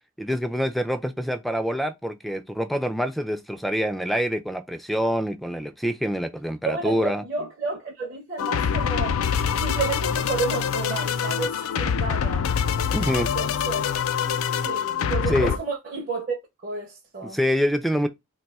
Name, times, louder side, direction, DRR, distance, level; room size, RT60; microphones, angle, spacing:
voice 1, 0.2-7.2 12.9-13.3 15.3-15.5 17.3-18.1, equal, ahead, 0.3 m, -26 dB
voice 2, 6.7-9.2 9.6-12.5 13.2-13.9 14.6-17.4, right 4 dB, 45° right, 0.6 m, -31 dB
sound 1, 8.4-15.6, left 7 dB, 90° left, 0.4 m, -25 dB
2.6 x 2.3 x 4.0 m
head